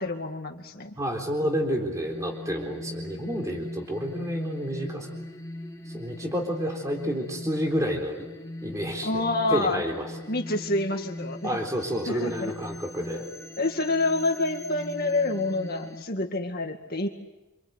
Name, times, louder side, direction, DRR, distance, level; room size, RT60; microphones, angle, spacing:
voice 1, 0.0-1.0 9.0-9.8 10.3-11.6 12.1-12.5 13.6-17.1, left 2 dB, 45° left, 4 dB, 2.1 m, -27 dB
voice 2, 1.0-5.1 5.9-8.3 8.6-10.1 11.4-13.3, equal, 15° right, 2 dB, 3.8 m, -29 dB
sound 1, 1.9-16.0, left 1 dB, 15° left, 1.9 m, -40 dB
27.5 x 26.0 x 8.1 m, 1.0 s
head